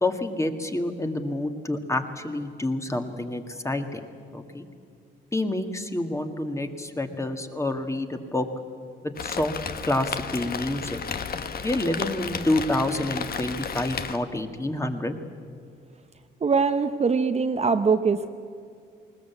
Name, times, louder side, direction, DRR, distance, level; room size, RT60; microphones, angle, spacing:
voice 1, 0.0-4.1 4.3-4.7 5.3-8.5 9.0-9.5 9.9-11.0 11.6-15.2, left 1 dB, 15° left, 6 dB, 1.8 m, -28 dB
Rain, 9.1-14.2, left 6 dB, 50° left, 1.3 m, -33 dB
voice 2, 16.4-18.3, right 5 dB, 30° right, 8 dB, 0.9 m, -22 dB
20.0 x 19.5 x 8.3 m, 2.4 s
cardioid pair, 90°, 20 cm